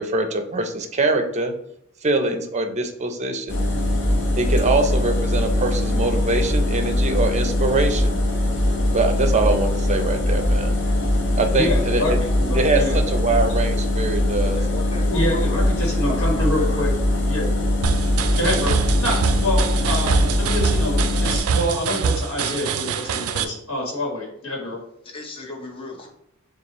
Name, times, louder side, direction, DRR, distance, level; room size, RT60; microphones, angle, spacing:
voice 1, 0.0-1.5 2.0-3.6 4.4-8.2 8.9-10.7 11.4-12.2 12.5-12.8 13.1-14.6, right 3 dB, 30° right, 6 dB, 0.6 m, -23 dB
sound 1, 3.5-21.4, left 1 dB, 60° left, 0.9 m, -21 dB
voice 2, 11.5-12.1 12.4-13.0 15.1-16.9 17.3-17.5 18.4-18.7 19.0-24.8, left 1 dB, 75° left, -1 dB, 1.4 m, -26 dB
voice 3, 14.5-15.6 16.1-16.9 25.0-26.1, left 2 dB, 25° left, 0 dB, 0.7 m, -35 dB
sound 2, 17.8-23.4, right 6 dB, 90° right, 0.4 m, -24 dB
6.9 x 2.4 x 3.0 m, 0.73 s
head